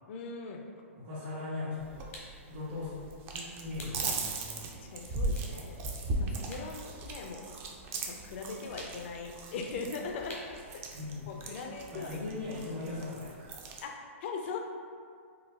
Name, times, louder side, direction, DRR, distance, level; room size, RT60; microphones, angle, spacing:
voice 1, 0.1-0.6 4.0-4.1 4.8-5.8 6.2-7.5 8.0-10.4 10.7-10.8 11.3-12.2 13.8-14.6, left 4 dB, 55° left, 2 dB, 0.4 m, -40 dB
voice 2, 1.0-2.1 2.5-3.0 3.3-4.6 10.9-11.4 11.9-13.6, left 3 dB, 50° right, -11 dB, 1.1 m, -39 dB
sound 1, 1.8-13.8, right 2 dB, 30° right, 0.4 m, -39 dB
sound 2, 2.1-2.4 3.8-4.1 4.5-4.7 5.3-6.7 7.0-8.1 8.8-9.2 10.3-10.6, left 1 dB, 80° left, 0.8 m, -47 dB
3.9 x 2.2 x 2.3 m, 2.2 s
hypercardioid pair, 125°, 7 cm